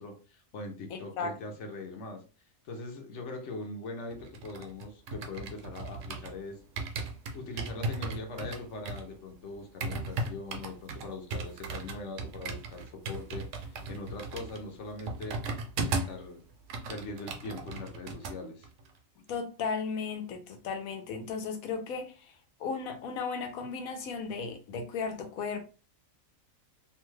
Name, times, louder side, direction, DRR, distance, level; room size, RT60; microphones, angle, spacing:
voice 1, 0.0-2.2 2.6-6.6 7.3-15.4 15.8-16.4 16.9-18.7, left 2 dB, 65° left, 1.0 m, -41 dB
voice 2, 0.9-1.3 19.3-22.3 22.6-25.6, left 5 dB, 85° left, 1.1 m, -35 dB
sound 1, 4.1-6.4 6.8-16.2 16.5-18.4 18.6-18.9, right 3 dB, 70° right, 0.9 m, -37 dB
2.7 x 2.2 x 3.1 m
omnidirectional pair, 1.4 m